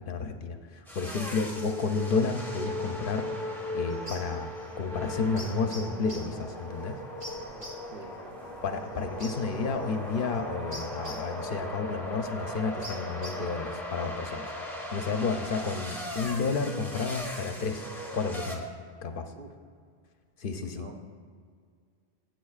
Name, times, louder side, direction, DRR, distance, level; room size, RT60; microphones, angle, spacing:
voice 1, 0.1-3.3 3.7-4.5 4.8-7.0 8.6-14.4 14.9-17.9 18.1-18.6 19.0-19.3 20.4-20.9, left 4 dB, 60° left, 7 dB, 0.7 m, -31 dB
sound 1, 0.9-18.6, left 1 dB, ahead, 0.9 m, -38 dB
sound 2, 2.0-14.6, equal, 25° right, 1.2 m, -49 dB
voice 2, 7.5-8.6 19.4-19.5 20.6-21.0, right 4 dB, 60° right, 4 dB, 0.9 m, -49 dB
15.0 x 8.0 x 2.4 m, 2.1 s
omnidirectional pair, 1.1 m